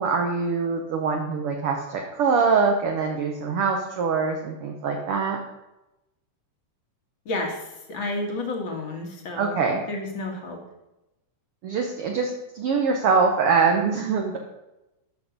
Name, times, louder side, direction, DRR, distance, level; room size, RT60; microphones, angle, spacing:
voice 1, 0.0-5.4 9.4-9.8 11.6-14.4, right 5 dB, 65° right, 2 dB, 1.4 m, -23 dB
voice 2, 7.3-9.6 9.9-10.6, left 2 dB, 45° left, 2 dB, 2.1 m, -31 dB
13.0 x 5.9 x 5.3 m, 0.95 s
omnidirectional pair, 3.7 m